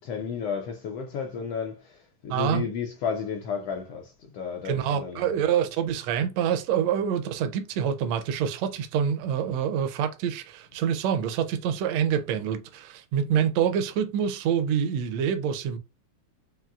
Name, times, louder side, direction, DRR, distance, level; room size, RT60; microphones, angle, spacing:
voice 1, 0.0-5.5, left 6 dB, 80° left, 1.4 m, -33 dB
voice 2, 2.3-2.6 4.6-15.8, right 8 dB, 75° right, 1.7 m, -26 dB
5.7 x 2.6 x 2.3 m
omnidirectional pair, 3.4 m